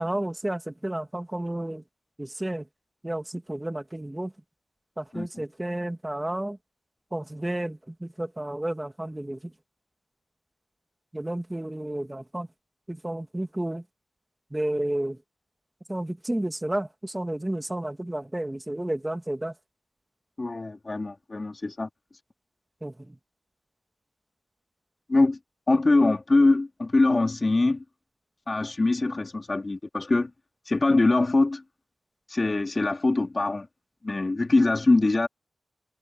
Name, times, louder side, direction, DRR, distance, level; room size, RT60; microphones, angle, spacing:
voice 1, 0.0-1.8 2.2-2.6 3.0-4.3 5.0-6.6 7.1-9.4 11.1-12.5 12.9-13.8 14.5-15.2 15.9-19.5 22.8-22.9, right 1 dB, 15° right, 2.6 m, -31 dB
voice 2, 5.1-5.4 20.4-21.9 25.1-25.4 25.7-27.8 28.5-30.3 30.7-31.6 32.3-33.7 34.0-35.3, left 2 dB, 35° left, 3.0 m, -23 dB
wide cardioid pair, 90°, 0 cm